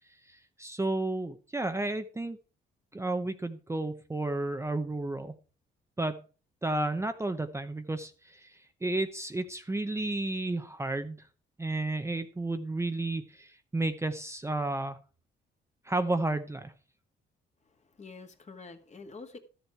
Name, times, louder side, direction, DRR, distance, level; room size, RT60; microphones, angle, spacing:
voice 1, 0.3-2.4 2.9-5.4 6.0-6.2 6.6-11.3 11.6-15.0 15.8-16.7, right 2 dB, 15° right, 0.8 m, -32 dB
voice 2, 17.6-19.4, left 4 dB, 35° left, 1.9 m, -47 dB
12.5 x 7.2 x 4.5 m
cardioid pair, 90°, 20 cm